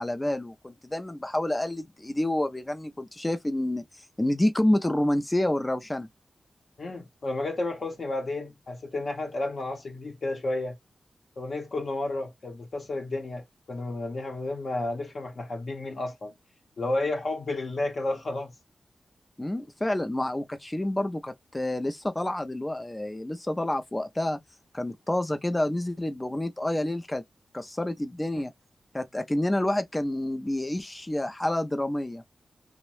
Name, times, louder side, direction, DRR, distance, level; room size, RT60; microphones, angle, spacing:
voice 1, 0.0-6.1 19.4-24.4 24.7-27.2 27.5-28.5 28.9-32.2, left 1 dB, 15° left, 0.4 m, -28 dB
voice 2, 6.8-10.8 11.4-16.3 16.8-18.5 28.3-28.4, left 2 dB, 60° left, 0.7 m, -32 dB
2.6 x 2.1 x 3.0 m
wide cardioid pair, 100°, 0 cm